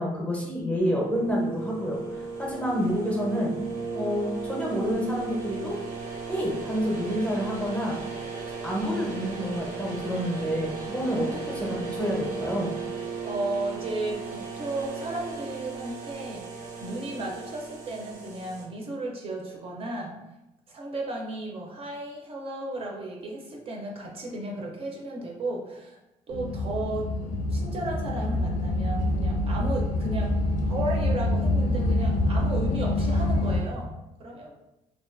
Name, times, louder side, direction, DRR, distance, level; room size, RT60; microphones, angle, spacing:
voice 1, 0.0-3.5 3.9-5.8 6.3-8.0 8.6-12.7, equal, 10° left, -3 dB, 0.6 m, -28 dB
sound 1, 0.8-18.7, right 5 dB, 90° right, 0.6 m, -36 dB
voice 2, 13.2-20.2 20.7-26.0 26.3-27.1 27.5-30.3 30.6-34.5, right 2 dB, 45° right, -1 dB, 0.4 m, -34 dB
sound 2, 26.3-33.6, left 1 dB, 85° left, 0.4 m, -26 dB
2.5 x 2.2 x 2.4 m, 0.93 s
cardioid pair, 120°, 14 cm